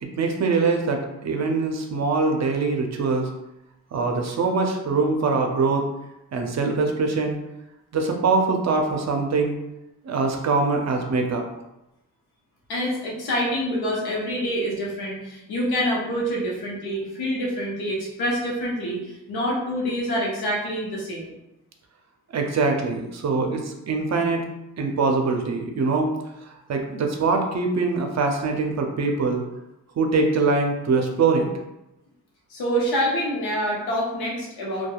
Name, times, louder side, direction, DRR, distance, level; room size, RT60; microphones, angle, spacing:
voice 1, 0.0-3.3 3.9-5.9 6.3-7.4 7.9-9.6 10.0-11.5 22.3-24.4 24.8-26.1 26.7-29.4 30.0-31.5, right 4 dB, 45° right, 3 dB, 0.5 m, -23 dB
voice 2, 12.7-21.3 32.5-34.9, equal, 80° left, -3 dB, 0.8 m, -26 dB
2.7 x 2.2 x 2.3 m, 0.91 s
cardioid pair, 60°, 37 cm